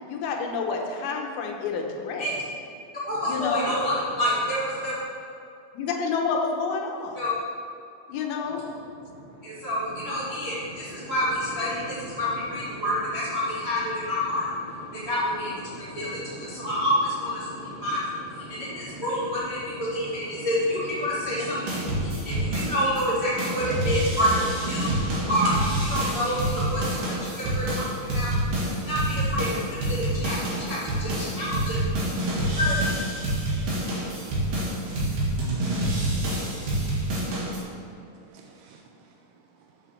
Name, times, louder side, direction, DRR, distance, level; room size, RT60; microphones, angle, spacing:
voice 1, 0.1-2.3 3.2-3.8 5.7-7.2 8.1-8.6, left 5 dB, 75° left, 2 dB, 2.6 m, -29 dB
voice 2, 3.1-4.9 7.1-7.3 9.4-31.8 32.6-32.7, equal, 30° right, -10 dB, 1.2 m, -28 dB
sound 1, 21.7-23.1 23.4-37.6, right 1 dB, 60° right, 3.6 m, -27 dB
voice 3, 35.9-36.4 38.2-39.7, right 5 dB, 85° right, 2 dB, 2.5 m, -55 dB
7.6 x 7.3 x 6.8 m, 2.6 s
omnidirectional pair, 4.7 m